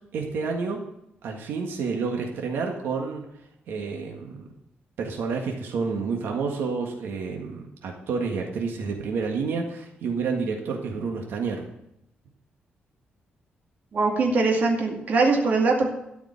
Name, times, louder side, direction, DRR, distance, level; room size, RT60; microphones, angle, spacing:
voice 1, 0.1-0.8 1.2-3.2 3.7-4.5 5.0-11.7, right 5 dB, 85° right, 1 dB, 1.7 m, -29 dB
voice 2, 13.9-15.9, right 3 dB, 45° right, 0 dB, 2.2 m, -22 dB
13.0 x 5.2 x 8.5 m, 0.82 s
wide cardioid pair, 165°, 4 cm